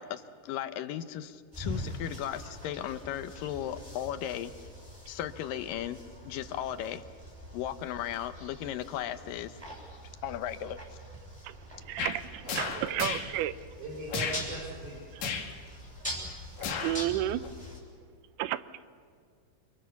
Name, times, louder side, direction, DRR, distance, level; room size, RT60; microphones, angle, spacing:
voice 1, 0.0-4.5 5.1-7.0 7.5-9.6 10.2-10.8, left 11 dB, 70° left, 10 dB, 2.5 m, -36 dB
sound 1, 1.5-17.8, left 1 dB, 10° right, 7.0 m, -44 dB
voice 2, 11.4-13.5 15.1-15.2 16.8-17.4 18.4-18.7, right 14 dB, 90° right, 14 dB, 2.8 m, -32 dB
sound 2, 12.0-12.2 12.5-13.3 14.1-14.4 15.2-15.5 16.6-17.0 17.4-17.5, left 6 dB, 55° left, 2.9 m, -33 dB
voice 3, 12.5-13.0 13.8-15.0, right 2 dB, 55° right, -3 dB, 6.0 m, -40 dB
29.5 x 24.5 x 7.1 m, 2.2 s
omnidirectional pair, 4.4 m